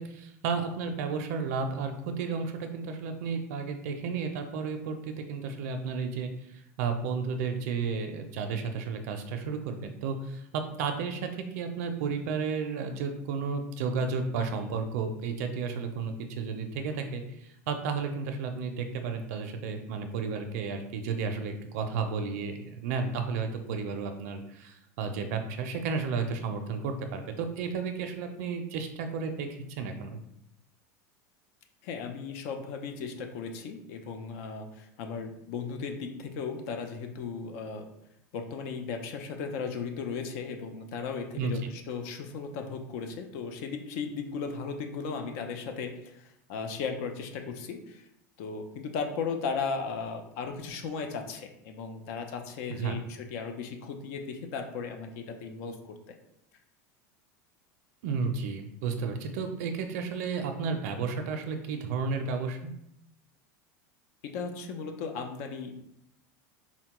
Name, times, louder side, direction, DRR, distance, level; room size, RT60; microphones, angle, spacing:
voice 1, 0.0-30.2 41.3-41.5 52.7-52.9 58.0-62.7, right 5 dB, 75° right, 5 dB, 0.4 m, -33 dB
voice 2, 31.8-37.9 38.3-48.1 48.4-56.1 64.2-65.7, left 5 dB, 65° left, 5 dB, 0.5 m, -36 dB
3.9 x 2.1 x 2.9 m, 0.78 s
supercardioid pair, 125°, 9 cm